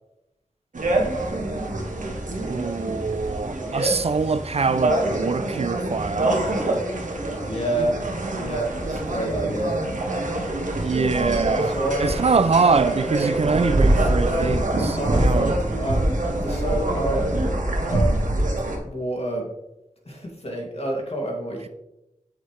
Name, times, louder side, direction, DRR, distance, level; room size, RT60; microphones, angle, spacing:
sound 1, 0.7-18.8, right 1 dB, 75° right, 1.5 m, -25 dB
voice 1, 2.4-6.3 10.8-15.6 15.8-15.9, right 4 dB, 50° right, 0.4 m, -24 dB
voice 2, 7.5-8.0 8.3-9.8 11.6-12.1 14.9-16.0 16.4-18.3 18.8-19.5 20.1-21.7, right 1 dB, 50° left, 2.4 m, -28 dB
8.0 x 7.8 x 3.3 m
cardioid pair, 45°, 13 cm